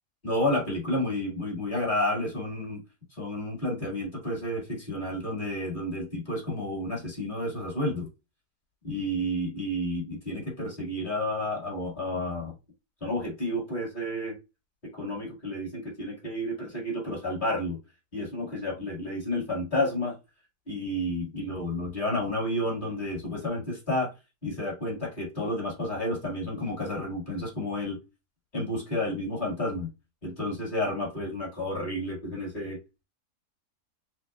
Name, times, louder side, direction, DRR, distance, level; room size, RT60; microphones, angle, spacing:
voice 1, 0.2-2.8 3.2-8.1 8.8-12.5 13.0-14.4 14.9-17.8 18.1-20.2 20.7-24.1 24.4-28.0 28.5-29.9 30.2-32.8, left 1 dB, 30° left, -2 dB, 1.8 m, -31 dB
6.5 x 2.3 x 2.2 m, 0.26 s
omnidirectional pair, 1.7 m